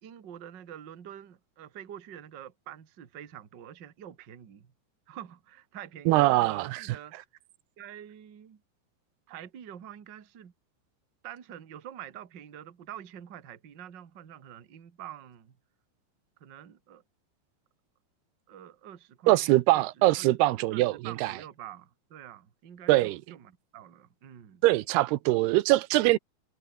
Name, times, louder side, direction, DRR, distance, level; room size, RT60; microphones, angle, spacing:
voice 1, 0.0-4.7 5.1-7.2 7.8-8.6 9.3-10.5 11.2-15.5 16.4-17.0 18.5-24.6 25.3-25.4 25.9-26.2, right 10 dB, 40° right, 1.7 m, -46 dB
voice 2, 6.1-6.8 19.3-21.3 22.9-23.2 24.6-26.2, right 18 dB, 85° right, 2.9 m, -23 dB
omnidirectional pair, 4.5 m